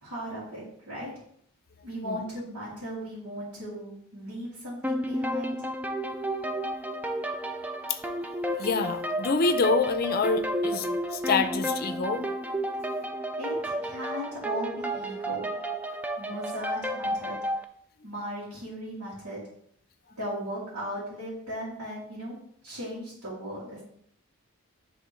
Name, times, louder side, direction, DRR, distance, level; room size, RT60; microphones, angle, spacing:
voice 1, 0.0-1.1 1.8-5.7 13.3-15.5 16.2-17.4 18.0-19.4 20.2-22.4 22.6-23.8, equal, 85° right, -10 dB, 2.4 m, -37 dB
sound 1, 4.8-17.6, equal, 5° right, 0.3 m, -32 dB
voice 2, 8.6-12.2, left 4 dB, 40° left, 8 dB, 0.5 m, -26 dB
10.0 x 3.5 x 3.1 m, 0.68 s
head